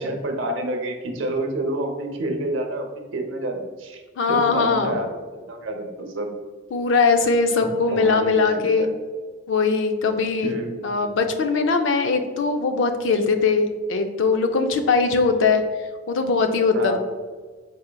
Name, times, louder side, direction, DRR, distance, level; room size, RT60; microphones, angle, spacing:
voice 1, 0.0-4.0 4.3-6.3 7.9-8.9 10.4-11.1 16.7-17.0, right 1 dB, 90° right, 3 dB, 0.7 m, -29 dB
voice 2, 4.2-5.0 6.7-8.9 9.5-10.5 10.8-15.6 16.1-17.0, left 4 dB, 75° left, 7 dB, 0.4 m, -21 dB
4.3 x 3.7 x 2.2 m, 1.5 s
head